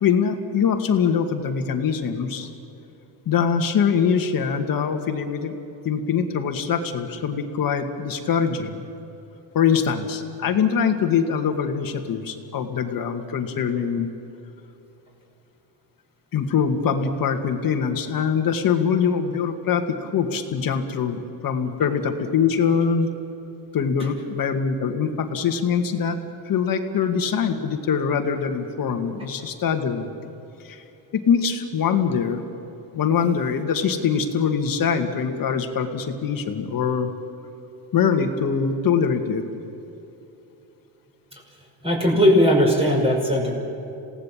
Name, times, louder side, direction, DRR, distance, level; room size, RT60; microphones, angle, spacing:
voice 1, 0.0-2.5 3.3-5.5 5.8-8.8 9.5-14.1 16.3-23.1 23.7-26.2 26.5-30.1 30.7-30.8 31.1-32.4 32.9-37.1 37.9-39.4, left 6 dB, 45° left, 5 dB, 2.3 m, -23 dB
voice 2, 41.8-43.6, equal, 10° right, -1 dB, 5.6 m, -18 dB
27.5 x 17.5 x 7.6 m, 3.0 s
cardioid pair, 105°, 45 cm